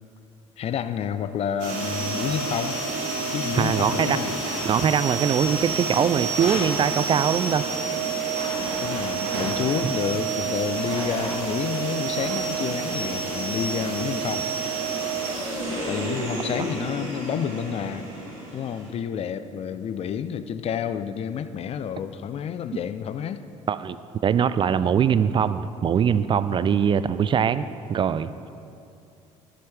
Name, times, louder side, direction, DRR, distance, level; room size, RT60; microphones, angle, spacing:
voice 1, 0.6-2.8 3.3-4.3 8.8-14.5 15.9-18.1 18.5-23.4 26.5-26.7, left 8 dB, 40° left, 12 dB, 0.5 m, -29 dB
sound 1, 1.6-18.9, right 4 dB, 65° right, 3.0 m, -29 dB
voice 2, 3.5-4.4 4.7-7.6 9.8-9.9 23.7-24.0 24.2-28.5, right 8 dB, 30° right, 14 dB, 0.4 m, -22 dB
14.5 x 11.0 x 3.5 m, 2.6 s
figure-of-eight pair, 50°, 16 cm